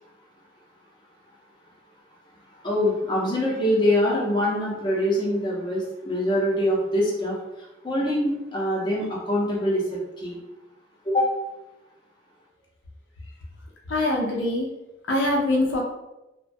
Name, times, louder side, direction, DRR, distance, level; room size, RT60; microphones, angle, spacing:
voice 1, 2.6-10.4 11.0-11.3, left 1 dB, 25° left, -5 dB, 0.6 m, -24 dB
voice 2, 13.9-14.7 15.1-15.8, left 1 dB, 85° left, -2 dB, 0.6 m, -23 dB
2.2 x 2.1 x 2.5 m, 0.98 s
head